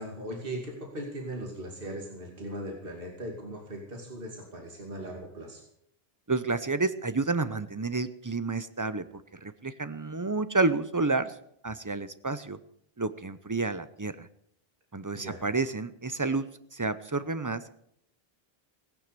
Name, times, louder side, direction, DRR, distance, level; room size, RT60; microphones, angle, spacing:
voice 1, 0.0-5.6 15.1-15.4, right 1 dB, 60° right, 0 dB, 2.8 m, -39 dB
voice 2, 6.3-11.3 11.6-12.6 13.0-14.3 14.9-17.7, right 3 dB, 20° right, 13 dB, 0.6 m, -30 dB
17.5 x 9.5 x 6.8 m, 0.72 s
omnidirectional pair, 1.0 m